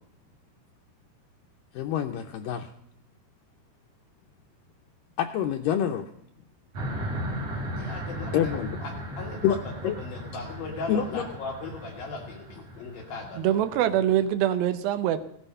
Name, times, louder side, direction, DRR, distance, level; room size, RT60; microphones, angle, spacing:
voice 1, 1.7-2.7 5.2-6.1 8.3-8.8 9.4-9.6 9.8-10.0 10.9-11.3, left 9 dB, 85° left, 5 dB, 1.9 m, -26 dB
sound 1, 6.7-14.2, equal, 40° right, 3.3 m, -36 dB
voice 2, 7.8-8.5 8.8-9.6 10.0-13.6, left 3 dB, 65° left, 1 dB, 3.3 m, -38 dB
voice 3, 13.4-15.2, right 11 dB, 75° right, 8 dB, 2.3 m, -24 dB
17.0 x 12.0 x 5.5 m, 0.72 s
omnidirectional pair, 4.8 m